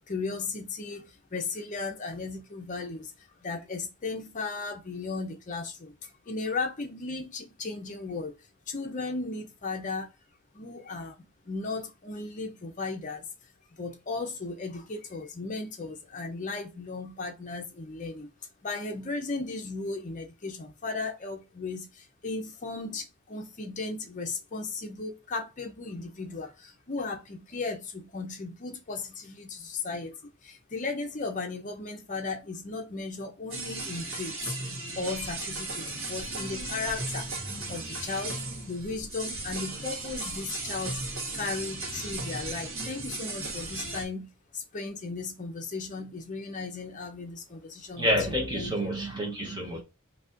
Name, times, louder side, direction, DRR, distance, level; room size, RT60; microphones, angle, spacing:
voice 1, 0.1-3.1 3.4-8.4 8.7-10.1 10.5-13.3 13.7-18.3 18.6-30.2 30.4-34.4 35.0-37.3 37.7-38.4 38.6-41.0 41.3-48.1 48.5-48.9, left 3 dB, 35° left, 0.7 m, -36 dB
sound 1, 33.5-44.1, right 2 dB, 70° right, 1.2 m, -36 dB
voice 2, 48.0-49.8, equal, 20° right, 0.9 m, -28 dB
4.0 x 2.7 x 2.5 m
head